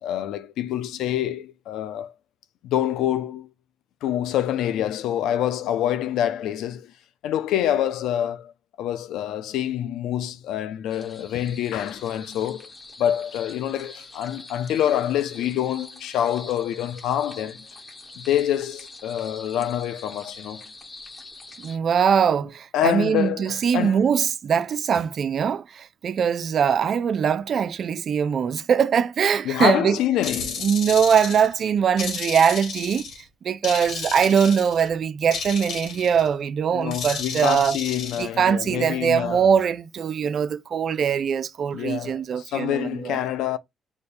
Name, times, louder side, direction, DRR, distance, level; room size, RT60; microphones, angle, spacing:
voice 1, 0.0-2.1 2.6-3.5 4.0-6.9 7.2-8.5 8.8-12.7 13.0-17.7 18.2-20.7 22.7-24.0 29.4-30.7 36.7-39.4 41.7-43.6, left 11 dB, 90° left, 0.5 m, -26 dB
sound 1, 10.9-21.8, left 2 dB, 30° left, 1.1 m, -44 dB
voice 2, 21.6-30.0 30.6-37.8 38.2-43.2, right 7 dB, 55° right, 0.5 m, -22 dB
sound 2, 30.2-31.5 32.0-33.2 33.6-34.9 35.3-36.3 36.9-38.2, left 5 dB, 70° left, 1.5 m, -33 dB
5.1 x 2.2 x 4.2 m
cardioid pair, 90°, 0 cm